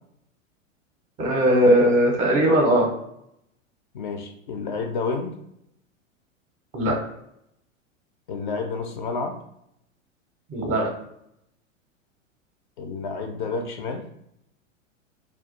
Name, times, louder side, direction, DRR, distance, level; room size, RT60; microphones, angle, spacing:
voice 1, 1.2-2.9 6.7-7.0 10.5-10.9, equal, 20° right, 0 dB, 0.5 m, -19 dB
voice 2, 3.9-5.4 8.3-9.4 12.8-14.1, left 4 dB, 40° left, 4 dB, 0.4 m, -30 dB
2.3 x 2.2 x 3.8 m, 0.77 s
figure-of-eight pair, 95°, 40 cm